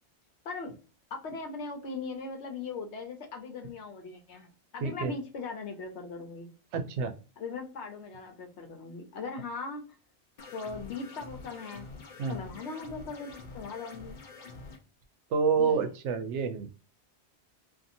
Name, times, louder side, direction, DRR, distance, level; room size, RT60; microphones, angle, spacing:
voice 1, 1.1-6.5 7.4-9.8 10.5-11.9 12.3-14.2 15.6-15.9, left 4 dB, 80° left, 1.0 m, -39 dB
voice 2, 4.8-5.1 6.7-7.1 12.2-12.4 15.3-16.7, right 5 dB, 90° right, 0.9 m, -28 dB
sound 1, 10.4-14.8, left 3 dB, 50° left, 0.6 m, -46 dB
2.6 x 2.5 x 2.5 m
omnidirectional pair, 1.2 m